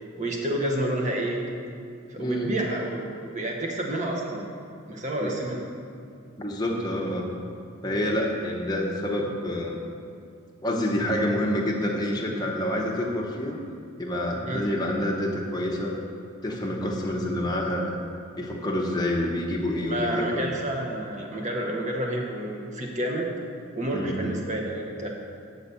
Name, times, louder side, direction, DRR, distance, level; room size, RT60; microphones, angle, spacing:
voice 1, 0.2-1.5 2.1-4.5 4.9-5.7 14.4-14.7 19.9-23.3 23.7-25.1, right 1 dB, 30° right, 0 dB, 0.9 m, -29 dB
voice 2, 2.2-2.5 5.2-5.3 6.4-7.3 7.8-9.8 10.6-13.6 14.0-16.0 16.4-18.0 18.4-20.4 23.9-24.2, left 1 dB, 20° left, -1 dB, 0.8 m, -27 dB
8.0 x 4.0 x 6.9 m, 2.3 s
head